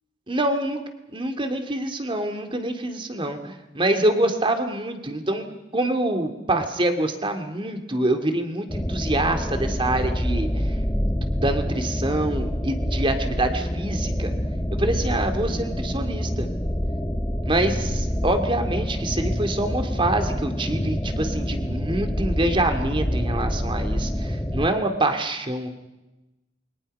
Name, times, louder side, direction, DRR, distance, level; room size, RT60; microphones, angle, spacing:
voice 1, 0.3-0.8 1.1-5.5 5.7-10.8 11.4-14.3 14.7-16.5 17.4-25.7, right 1 dB, 30° right, 7 dB, 2.3 m, -25 dB
sound 1, 8.7-24.7, equal, 15° left, 1.1 m, -26 dB
28.5 x 23.0 x 5.4 m, 1.0 s
head